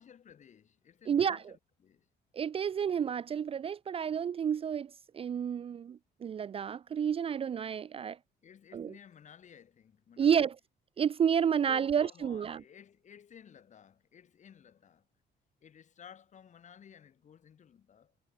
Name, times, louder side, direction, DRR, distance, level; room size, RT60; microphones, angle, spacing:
voice 1, 0.0-2.1 8.4-10.4 11.6-15.1 15.6-18.1, left 8 dB, 45° left, 5.5 m, -55 dB
voice 2, 1.1-1.5 2.3-8.2 8.7-8.9 10.2-10.6 11.0-12.6, right 8 dB, 35° right, 0.5 m, -30 dB
cardioid pair, 110°, 17 cm